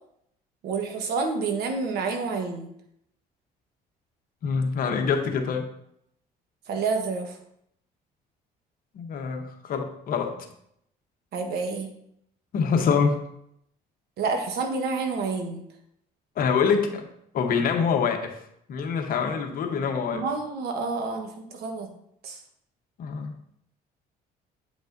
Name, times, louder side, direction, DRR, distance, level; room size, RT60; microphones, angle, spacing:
voice 1, 0.6-2.7 6.7-7.3 11.3-11.9 14.2-15.6 20.1-21.9 22.2-22.4, right 4 dB, 70° right, 4 dB, 1.1 m, -28 dB
voice 2, 4.4-5.7 8.9-10.4 12.5-13.2 16.4-17.0 17.3-18.4 18.7-20.3 23.0-23.3, left 6 dB, 60° left, 5 dB, 0.9 m, -25 dB
8.0 x 5.3 x 2.6 m, 0.74 s
cardioid pair, 110°, 17 cm